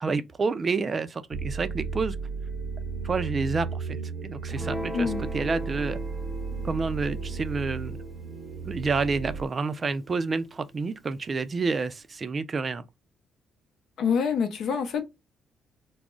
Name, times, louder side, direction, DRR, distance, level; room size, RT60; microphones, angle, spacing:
voice 1, 0.0-2.2 3.0-4.0 4.2-6.0 6.6-8.0 8.6-12.8, right 4 dB, 35° right, 0.3 m, -29 dB
sound 1, 1.3-9.5, right 5 dB, 85° right, 0.7 m, -34 dB
Guitar, 4.5-11.1, equal, 15° left, 0.7 m, -40 dB
voice 2, 14.0-15.0, left 6 dB, 70° left, 0.6 m, -26 dB
2.3 x 2.0 x 3.6 m
cardioid pair, 90°, 0 cm